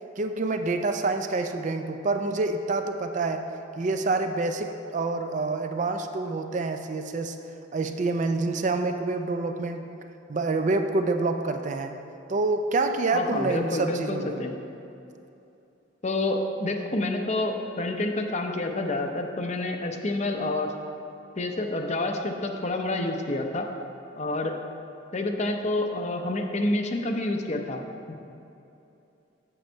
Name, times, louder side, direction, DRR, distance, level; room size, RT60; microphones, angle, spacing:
voice 1, 0.2-3.5 3.8-7.4 7.7-10.0 10.3-12.0 12.3-14.3, right 3 dB, 40° right, 6 dB, 0.4 m, -27 dB
voice 2, 13.1-14.6 16.0-20.7 21.4-23.7 24.2-24.5 25.1-27.8 28.1-28.2, left 2 dB, 35° left, 4 dB, 0.6 m, -28 dB
7.8 x 7.1 x 4.5 m, 2.8 s
head